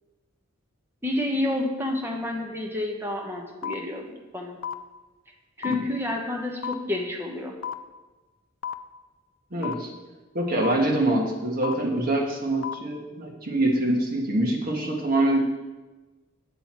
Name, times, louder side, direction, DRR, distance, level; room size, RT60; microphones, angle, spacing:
voice 1, 1.0-4.6 5.6-7.6, left 1 dB, 10° right, 0 dB, 1.1 m, -29 dB
Film Countdown, 3.6-3.7 4.6-4.7 5.6-5.7 6.6-6.7 7.6-7.7 8.6-8.7 9.6-9.7 10.6-10.7 11.6-11.7 12.6-12.7, left 8 dB, 90° left, 0.4 m, -30 dB
voice 2, 9.5-9.9 10.3-15.4, right 1 dB, 50° right, 0 dB, 1.5 m, -25 dB
8.1 x 7.8 x 4.4 m, 1.2 s
head